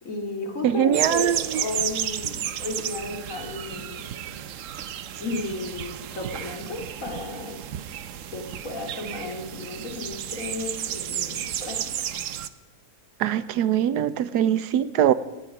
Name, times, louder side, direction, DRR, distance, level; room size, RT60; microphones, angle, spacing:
voice 1, 0.0-4.1 5.2-7.6 8.3-11.8, left 2 dB, 55° left, 3 dB, 3.0 m, -34 dB
voice 2, 0.6-1.4 13.2-15.1, right 10 dB, 85° right, 16 dB, 1.3 m, -22 dB
sound 1, 0.9-12.5, right 10 dB, 60° right, 1.0 m, -32 dB
18.0 x 15.5 x 4.9 m, 1.1 s
omnidirectional pair, 1.7 m